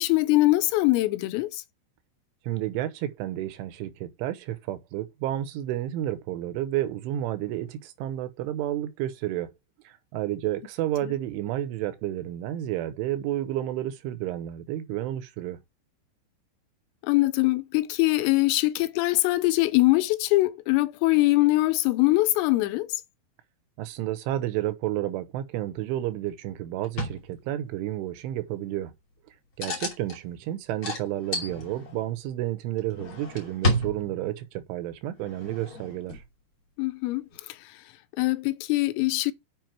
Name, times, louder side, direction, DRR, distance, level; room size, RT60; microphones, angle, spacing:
voice 1, 0.0-1.6 17.0-23.0 36.8-37.3 38.2-39.3, left 19 dB, 85° left, 3.3 m, -22 dB
voice 2, 2.5-9.5 9.9-15.6 23.8-28.9 29.6-36.2, right 13 dB, 80° right, 3.1 m, -31 dB
sound 1, 26.8-27.2 29.6-30.2 30.8-32.1 32.8-34.4 35.2-36.2 37.3-37.4, left 1 dB, 35° left, 2.4 m, -31 dB
9.2 x 5.4 x 4.4 m
omnidirectional pair, 5.9 m